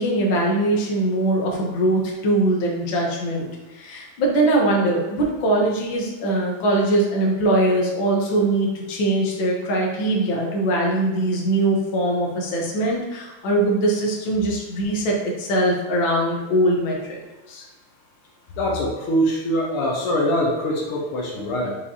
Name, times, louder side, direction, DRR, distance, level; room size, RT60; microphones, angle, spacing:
voice 1, 0.0-17.2 17.5-17.6, right 1 dB, 65° left, -2 dB, 1.9 m, -22 dB
voice 2, 18.6-21.8, equal, 85° left, -2 dB, 1.9 m, -23 dB
6.9 x 4.9 x 2.8 m, 1.1 s
omnidirectional pair, 2.3 m